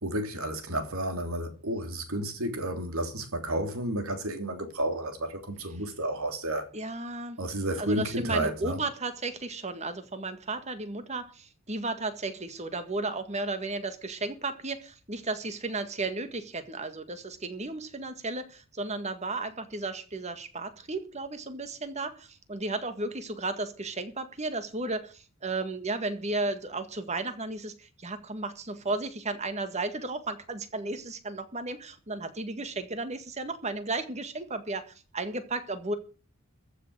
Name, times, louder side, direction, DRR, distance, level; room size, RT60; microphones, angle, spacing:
voice 1, 0.0-6.7 7.4-8.8, right 1 dB, 75° right, 3.1 m, -31 dB
voice 2, 6.7-7.4 7.8-34.8 35.1-35.9, right 2 dB, 30° right, 1.8 m, -34 dB
14.5 x 6.6 x 8.6 m
head